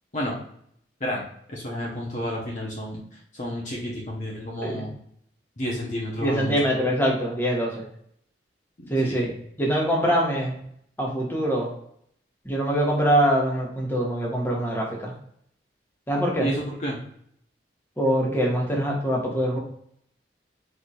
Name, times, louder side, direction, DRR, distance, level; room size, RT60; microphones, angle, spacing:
voice 1, 1.0-3.0 3.3-4.9 5.6-6.5 8.8-9.2 16.4-17.0, equal, 45° left, -3 dB, 1.1 m, -31 dB
voice 2, 6.2-7.8 8.9-10.6 11.0-11.7 12.4-15.1 16.1-16.5 18.0-19.6, equal, 10° left, -2 dB, 1.4 m, -24 dB
4.8 x 4.3 x 2.5 m, 0.68 s
head